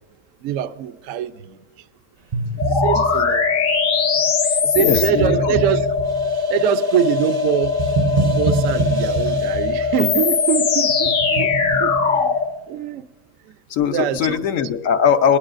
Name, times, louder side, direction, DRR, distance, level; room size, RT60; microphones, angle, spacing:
voice 1, 0.4-1.6 2.6-3.5 4.6-5.9 6.5-7.7 8.4-11.5 11.8-12.4 12.7-13.0 13.9-14.4, right 11 dB, 70° right, 1.0 m, -23 dB
sound 1, 2.3-3.5 4.8-10.1 10.9-12.2, right 3 dB, 40° right, 0.6 m, -26 dB
sound 2, 2.6-12.5, left 5 dB, 45° left, 0.8 m, -20 dB
voice 2, 4.4-5.6 13.7-15.4, left 8 dB, 70° left, 1.1 m, -20 dB
21.5 x 17.0 x 2.5 m
omnidirectional pair, 1.5 m